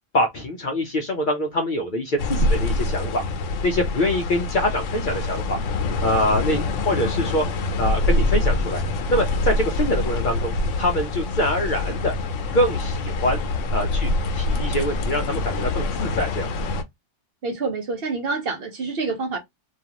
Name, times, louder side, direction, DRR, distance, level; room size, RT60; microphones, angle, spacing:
voice 1, 0.1-3.3 3.6-5.6 6.0-7.4 7.8-8.8 9.1-12.1 12.5-13.4 13.7-16.5, left 1 dB, 55° left, 0.6 m, -24 dB
sound 1, 2.2-16.8, left 2 dB, 85° left, 0.9 m, -25 dB
voice 2, 17.4-19.4, right 4 dB, 60° right, 0.9 m, -27 dB
2.5 x 2.3 x 2.8 m
omnidirectional pair, 1.3 m